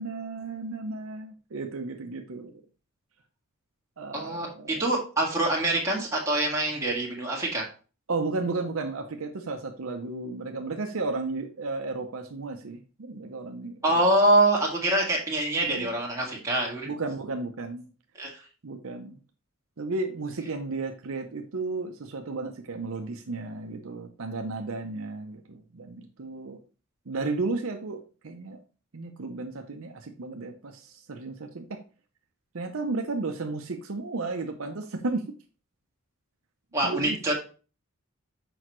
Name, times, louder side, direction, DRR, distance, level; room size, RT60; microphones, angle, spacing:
voice 1, 0.0-2.5 4.0-4.9 8.1-14.0 15.6-15.9 16.9-17.9 18.6-19.2 19.8-26.6 27.1-28.6 28.9-31.8 32.5-35.3 36.8-37.2, right 3 dB, 65° right, 5 dB, 0.7 m, -33 dB
voice 2, 4.1-7.7 13.8-16.9 18.2-18.4 36.7-37.3, right 1 dB, 15° right, -3 dB, 1.7 m, -25 dB
6.3 x 4.9 x 3.0 m, 0.35 s
head